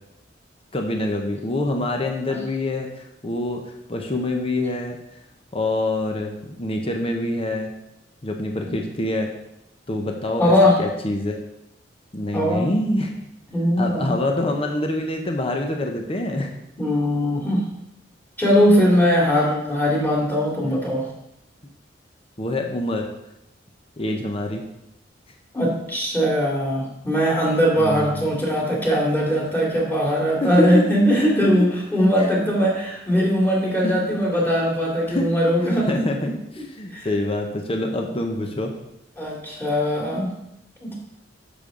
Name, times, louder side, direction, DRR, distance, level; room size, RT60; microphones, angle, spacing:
voice 1, 0.7-3.6 3.9-5.0 5.5-7.7 8.2-9.3 9.9-10.5 10.8-11.4 12.1-13.1 13.8-16.5 22.4-23.1 24.0-24.6 27.8-28.4 30.4-31.5 32.2-32.3 33.8-33.9 35.1-35.3 35.6-38.7, left 1 dB, 30° left, 2 dB, 0.9 m, -26 dB
voice 2, 10.4-10.8 12.3-12.7 13.5-14.1 16.8-17.7 18.4-21.0 25.5-36.1 36.9-37.1 39.2-40.3 40.8-40.9, equal, 10° left, -4 dB, 2.7 m, -20 dB
10.0 x 6.9 x 3.9 m, 0.83 s
head